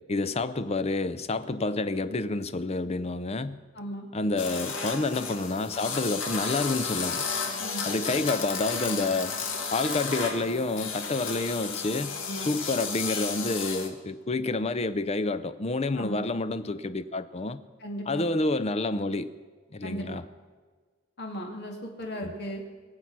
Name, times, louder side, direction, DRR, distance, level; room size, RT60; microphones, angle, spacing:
voice 1, 0.1-3.6 4.1-7.2 7.9-9.4 9.7-12.1 12.5-17.6 18.1-19.3 19.7-20.2 22.2-22.3, left 2 dB, 30° left, 12 dB, 0.6 m, -29 dB
voice 2, 3.7-4.1 7.6-7.9 12.2-12.5 16.0-16.2 17.8-18.3 19.8-20.3 21.2-22.6, equal, 55° left, 1 dB, 2.6 m, -36 dB
sound 1, 4.4-13.9, left 5 dB, 90° left, 2.0 m, -33 dB
22.0 x 7.8 x 6.0 m, 1.4 s
head